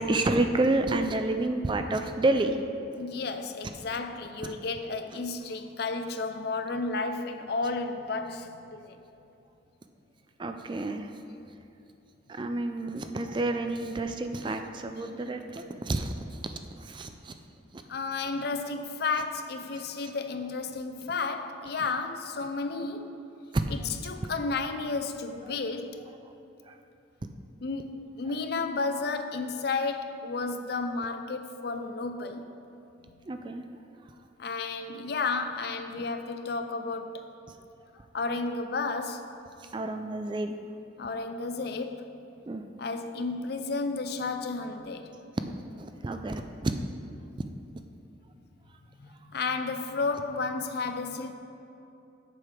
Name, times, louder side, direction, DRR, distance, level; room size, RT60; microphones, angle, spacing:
voice 1, 0.1-2.5 10.4-11.1 12.3-17.3 23.5-23.6 26.7-26.8 33.3-33.6 39.7-40.6 42.5-42.6 45.8-46.7, right 2 dB, 25° right, 0.3 m, -29 dB
voice 2, 3.0-9.0 17.9-23.2 23.7-26.1 27.6-32.5 34.4-37.2 38.1-39.3 41.0-42.1 42.8-45.2 49.0-51.3, left 3 dB, 55° left, 0.5 m, -32 dB
7.6 x 6.6 x 4.9 m
head